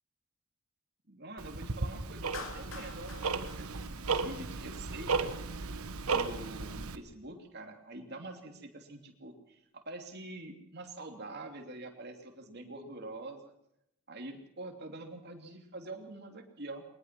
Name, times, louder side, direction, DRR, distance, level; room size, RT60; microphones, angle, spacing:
voice 1, 1.1-5.3 6.1-13.5 14.1-16.8, right 2 dB, 50° right, 3 dB, 3.0 m, -45 dB
Tick-tock, 1.4-7.0, right 4 dB, 85° right, 1.3 m, -35 dB
Clapping, 2.3-4.6, left 4 dB, 60° left, 2.9 m, -46 dB
22.0 x 19.5 x 6.1 m, 0.80 s
head